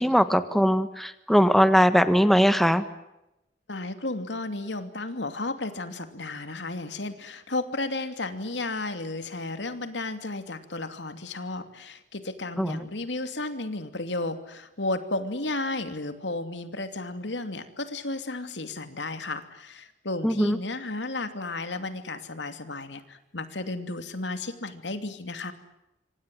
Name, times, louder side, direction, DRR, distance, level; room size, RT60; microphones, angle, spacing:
voice 1, 0.0-2.8 12.6-12.8 20.2-20.6, equal, ahead, 11 dB, 1.4 m, -20 dB
voice 2, 3.7-25.5, left 2 dB, 85° left, 9 dB, 2.8 m, -33 dB
26.5 x 26.0 x 7.9 m, 0.89 s
head